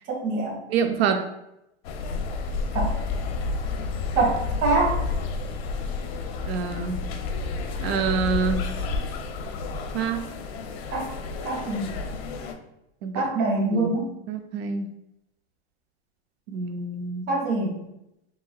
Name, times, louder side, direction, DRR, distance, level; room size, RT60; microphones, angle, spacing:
voice 1, 0.1-0.6 2.7-2.9 4.1-5.0 10.9-11.1 11.4-11.9 13.1-14.1 17.3-17.8, right 2 dB, 40° right, -1 dB, 1.5 m, -24 dB
voice 2, 0.7-1.3 6.5-7.0 7.8-8.7 9.9-10.3 13.0-13.3 13.7-14.9 16.5-17.3, right 5 dB, 65° right, 6 dB, 0.5 m, -27 dB
sound 1, 1.8-12.5, left 3 dB, 70° left, 0.6 m, -30 dB
5.4 x 3.1 x 2.3 m, 0.85 s
supercardioid pair, 150°, 32 cm